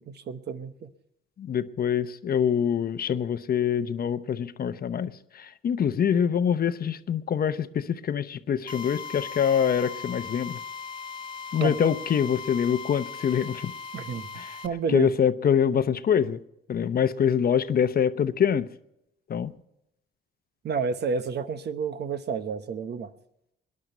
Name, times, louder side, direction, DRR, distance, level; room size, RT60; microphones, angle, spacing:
voice 1, 0.1-0.9 11.6-11.7 13.9-14.3 14.6-15.1 20.6-23.1, right 5 dB, 60° right, 1.1 m, -30 dB
voice 2, 1.4-10.6 11.5-13.7 14.3-14.6 14.9-16.4 16.7-18.7 19.3-19.5, left 8 dB, 50° left, 0.8 m, -25 dB
Drill, 8.7-14.7, left 6 dB, 25° left, 1.6 m, -38 dB
19.0 x 11.0 x 5.4 m
cardioid pair, 90°, 20 cm